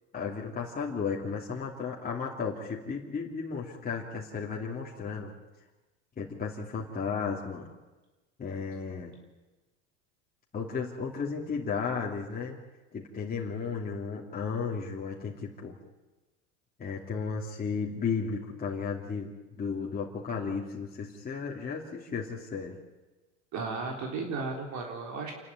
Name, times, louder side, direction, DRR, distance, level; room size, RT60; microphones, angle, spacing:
voice 1, 0.1-5.3 6.2-7.7 8.4-9.2 10.5-12.5 12.9-15.8 16.8-19.3 19.6-22.8, left 5 dB, 25° left, -3 dB, 2.9 m, -34 dB
voice 2, 23.5-25.3, right 4 dB, 50° right, 1 dB, 3.8 m, -34 dB
28.0 x 11.5 x 9.9 m, 1.2 s
supercardioid pair, 95°, 35 cm